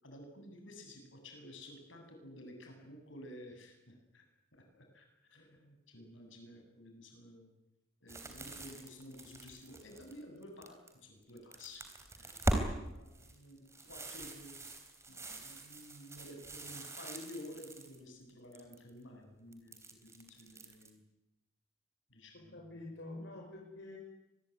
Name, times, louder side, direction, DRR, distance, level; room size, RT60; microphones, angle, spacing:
voice 1, 0.0-4.2 4.6-7.5 8.0-11.9 12.2-14.6 15.1-21.0 22.1-22.6, left 1 dB, 85° left, 4 dB, 7.7 m, -52 dB
sound 1, 8.1-10.9 11.3-12.7 13.1-18.0 18.3-18.9 19.5-20.9, right 1 dB, 15° right, 3.8 m, -41 dB
voice 2, 22.3-24.0, left 2 dB, 65° left, 0 dB, 6.0 m, -47 dB
25.0 x 21.0 x 9.5 m, 0.94 s
head